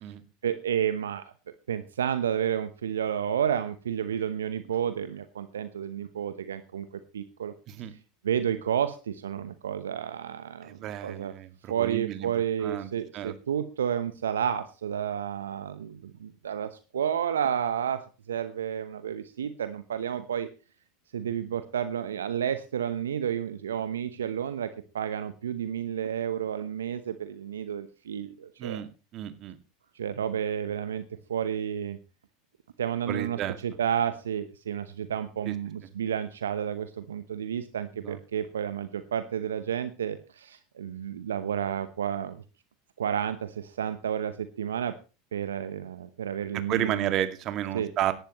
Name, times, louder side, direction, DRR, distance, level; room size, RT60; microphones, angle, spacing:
voice 1, 0.4-1.3 1.7-6.9 7.1-7.5 8.2-11.3 11.7-18.0 18.3-20.5 21.1-24.7 24.9-28.8 29.9-31.0 31.3-32.0 32.8-42.4 43.0-44.9 45.3-47.1 47.7-47.9, right 9 dB, 80° right, 11 dB, 0.9 m, -31 dB
voice 2, 10.6-12.3 12.6-12.9 13.1-13.3 28.6-28.9 29.1-29.6 33.1-33.6 35.5-35.6 38.0-38.2 46.7-48.1, right 11 dB, 45° right, 9 dB, 2.1 m, -32 dB
17.5 x 11.5 x 3.1 m, 0.32 s
hypercardioid pair, 80°, 0 cm